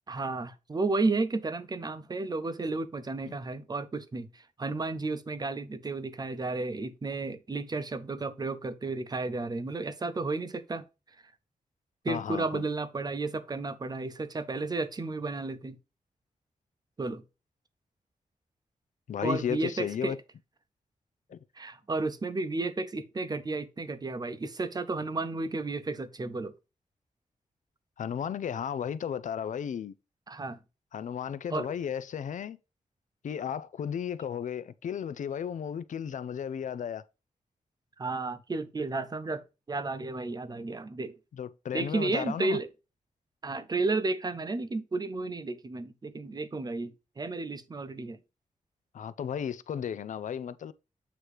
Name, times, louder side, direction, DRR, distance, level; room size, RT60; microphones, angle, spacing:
voice 1, 0.1-10.8 12.0-15.8 17.0-17.2 19.2-20.1 21.6-26.5 30.3-30.6 31.5-31.7 38.0-41.2 41.7-42.7 43.4-48.2, right 3 dB, 30° right, 0.7 m, -32 dB
voice 2, 12.1-12.7 19.1-20.2 21.3-21.4 28.0-30.0 30.9-32.6 33.2-37.0 41.4-42.6 48.9-50.7, left 8 dB, 70° left, 0.5 m, -34 dB
8.2 x 3.0 x 4.8 m
wide cardioid pair, 135°, 13 cm